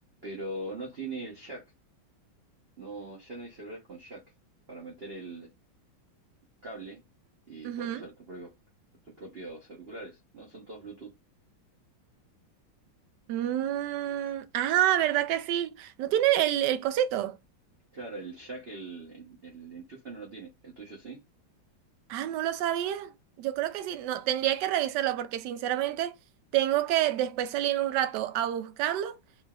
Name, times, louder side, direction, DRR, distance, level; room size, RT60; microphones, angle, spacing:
voice 1, 0.2-1.6 2.8-4.2 4.7-5.5 6.6-7.0 7.5-8.5 9.0-11.1 17.9-21.2, right 2 dB, 45° right, 0.8 m, -41 dB
voice 2, 7.6-8.0 13.3-17.4 22.1-26.1 26.5-29.2, right 12 dB, 75° right, 1.0 m, -28 dB
3.8 x 3.2 x 2.3 m
omnidirectional pair, 2.2 m